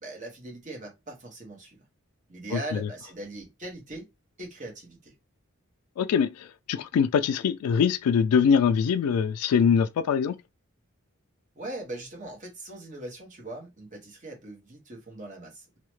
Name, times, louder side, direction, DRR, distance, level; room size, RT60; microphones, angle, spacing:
voice 1, 0.0-1.8 2.3-4.1 4.4-5.1 11.6-15.8, right 2 dB, 35° right, 1.0 m, -40 dB
voice 2, 6.0-10.4, left 7 dB, 90° left, 0.3 m, -23 dB
2.8 x 2.1 x 3.1 m
head